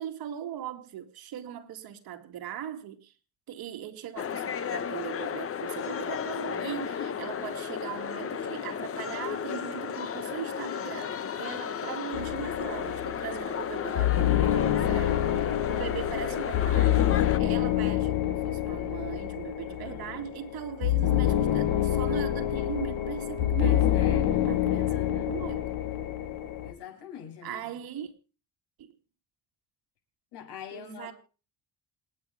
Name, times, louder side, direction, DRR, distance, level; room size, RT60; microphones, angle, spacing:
voice 1, 0.0-3.1 3.5-17.1 17.4-25.7 27.4-28.1 28.8-28.9 30.7-31.1, right 9 dB, 65° right, 2.3 m, -39 dB
sound 1, 4.2-17.4, left 7 dB, 35° left, 1.0 m, -33 dB
sound 2, 12.1-26.7, left 12 dB, 75° left, 2.9 m, -27 dB
voice 2, 19.6-20.3 23.6-24.4 24.7-25.6 26.6-27.8 30.3-31.1, left 8 dB, 90° left, 7.5 m, -45 dB
27.5 x 9.3 x 3.4 m
cardioid pair, 135°, 39 cm